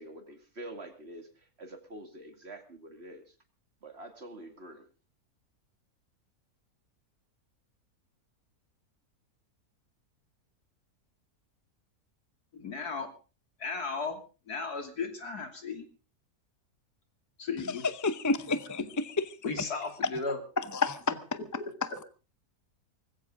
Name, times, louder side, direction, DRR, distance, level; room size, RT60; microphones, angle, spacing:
voice 1, 0.0-3.4 3.8-4.9, right 1 dB, 45° right, 6 dB, 2.5 m, -46 dB
voice 2, 12.5-13.1 13.6-14.2 14.5-15.9 17.4-17.8 19.4-20.4 21.3-21.5, left 4 dB, 85° left, 5 dB, 3.3 m, -35 dB
voice 3, 18.0-18.8 20.6-21.2 21.8-21.9, left 3 dB, 20° left, 12 dB, 0.4 m, -29 dB
19.5 x 16.0 x 3.8 m, 0.35 s
omnidirectional pair, 1.6 m